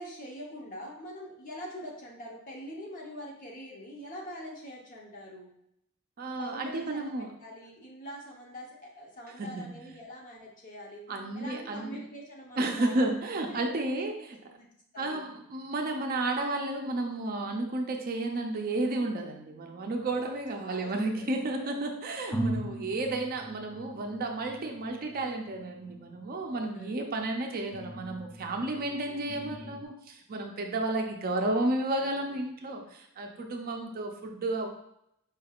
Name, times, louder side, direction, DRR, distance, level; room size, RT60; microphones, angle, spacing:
voice 1, 0.0-5.5 6.3-11.0 11.3-13.1 13.4-14.1 14.5-14.7 14.9-15.3 20.1-21.7 26.4-27.1 28.6-28.9 33.6-34.0, equal, 40° left, -2 dB, 0.9 m, -44 dB
voice 2, 6.2-7.3 9.4-9.7 11.1-12.0 12.6-14.4 15.0-34.7, right 2 dB, 45° right, 3 dB, 0.5 m, -32 dB
sound 1, 20.0-21.2 21.8-21.9 22.3-29.8, right 1 dB, 15° left, 0.5 m, -40 dB
4.9 x 3.2 x 2.4 m, 0.76 s
head